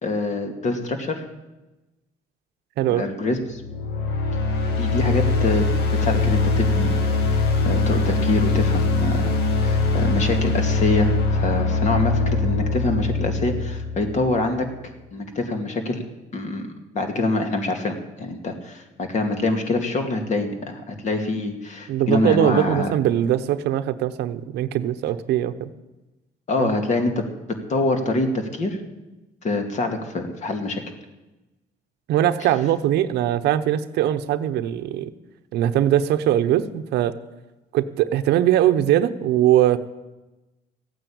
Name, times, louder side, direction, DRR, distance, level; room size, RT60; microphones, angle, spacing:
voice 1, 0.0-1.2 2.9-3.6 4.8-14.7 15.1-16.0 16.3-16.7 16.9-22.9 26.5-28.8 29.4-30.8, left 2 dB, 45° left, 5 dB, 2.5 m, -25 dB
sound 1, 3.5-14.6, left 3 dB, 80° left, 1.9 m, -22 dB
voice 2, 21.9-25.7 26.6-26.7 32.1-35.1 35.5-37.2 37.7-39.8, right 12 dB, 80° right, 11 dB, 0.9 m, -21 dB
15.0 x 9.2 x 8.8 m, 1.1 s
cardioid pair, 110°, 17 cm